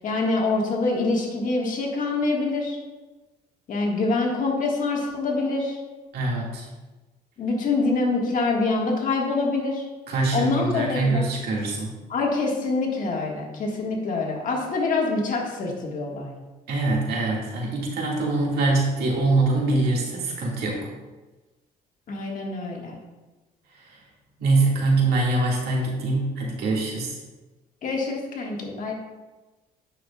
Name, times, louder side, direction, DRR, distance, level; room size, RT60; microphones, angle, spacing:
voice 1, 0.0-2.8 3.7-5.8 7.4-9.8 10.3-11.2 12.1-16.3 22.1-23.0 27.8-28.9, left 3 dB, 50° left, -1 dB, 1.6 m, -25 dB
voice 2, 6.1-6.7 10.1-11.9 16.7-20.9 24.4-27.2, right 2 dB, 70° right, -2 dB, 1.9 m, -23 dB
8.9 x 6.1 x 2.3 m, 1.2 s
cardioid pair, 110°, 17 cm